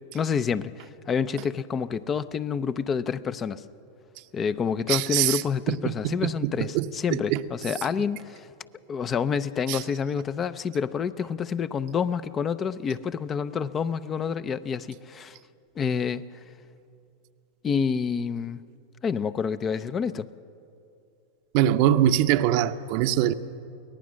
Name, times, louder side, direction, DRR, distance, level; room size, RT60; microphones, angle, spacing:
voice 1, 0.1-3.6 4.3-8.5 8.9-15.4 15.8-16.2 17.6-18.6 19.0-20.3, left 6 dB, 30° left, 14 dB, 0.6 m, -28 dB
voice 2, 4.9-5.4 5.7-7.4 9.7-9.8 21.5-23.3, right 12 dB, 55° right, 10 dB, 0.8 m, -23 dB
23.5 x 18.0 x 6.4 m, 2.6 s
hypercardioid pair, 105°, 0 cm